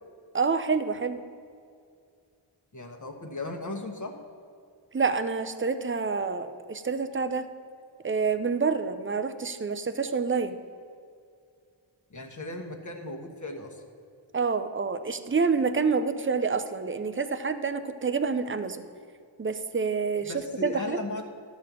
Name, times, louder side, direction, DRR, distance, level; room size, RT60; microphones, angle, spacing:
voice 1, 0.3-1.2 4.9-7.5 8.0-10.6 14.3-18.9 19.4-20.3 20.6-21.0, right 5 dB, 25° right, 10 dB, 0.5 m, -27 dB
voice 2, 2.7-4.1 12.1-13.8 20.2-21.2, left 2 dB, 35° left, 3 dB, 1.2 m, -36 dB
12.0 x 4.3 x 7.3 m, 2.3 s
wide cardioid pair, 85°, 50 cm